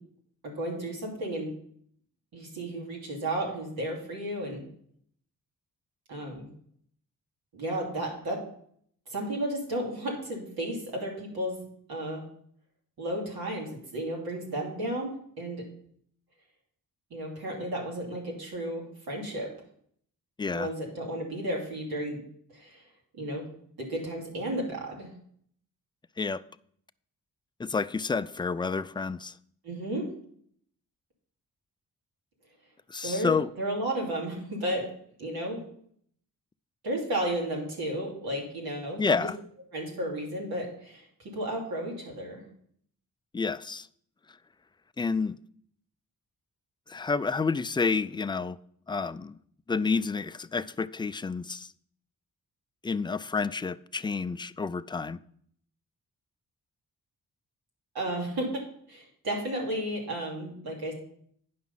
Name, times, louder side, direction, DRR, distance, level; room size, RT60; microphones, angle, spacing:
voice 1, 0.4-1.5 2.3-4.6 6.1-6.5 7.5-8.4 9.1-11.6 11.9-12.2 13.0-15.6 17.1-19.5 20.5-22.2 22.5-22.8 23.1-23.5 23.8-25.1 29.6-30.1 33.0-34.9 35.2-35.6 36.8-39.3 39.7-42.4 57.9-58.5 58.9-60.9, right 1 dB, 80° right, 2.9 m, -33 dB
voice 2, 27.6-29.3 32.9-33.5 39.0-39.3 43.3-43.9 45.0-45.4 46.9-48.6 48.9-49.4 49.7-51.7 52.8-55.2, left 4 dB, 15° left, 0.3 m, -29 dB
9.6 x 5.8 x 5.5 m
cardioid pair, 70°, 36 cm